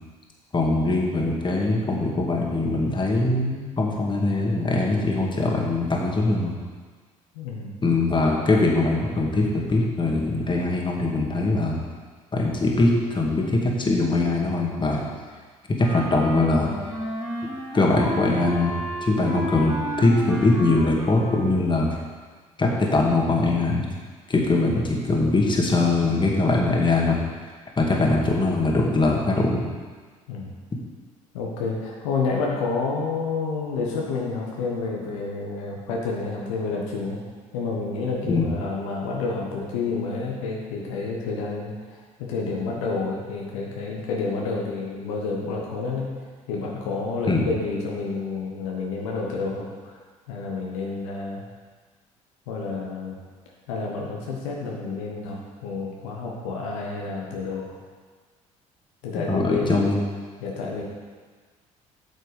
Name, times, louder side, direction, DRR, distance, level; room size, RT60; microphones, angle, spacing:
voice 1, 0.5-6.6 7.8-11.8 12.3-15.1 15.7-16.7 17.7-22.0 22.6-23.9 24.3-27.2 27.8-29.6 38.3-38.5 47.3-47.4 59.1-60.0, left 2 dB, 25° left, -1 dB, 2.0 m, -22 dB
voice 2, 7.3-7.8 30.3-30.5 31.3-37.2 37.5-46.2 46.5-50.0 50.3-51.5 52.5-53.2 53.7-57.8 59.0-59.9 60.4-60.8, left 4 dB, 75° left, -2 dB, 1.4 m, -29 dB
Wind instrument woodwind instrument, 15.8-21.7, equal, 10° right, 3.0 m, -32 dB
8.3 x 6.6 x 5.2 m, 1.5 s
hypercardioid pair, 55°, 17 cm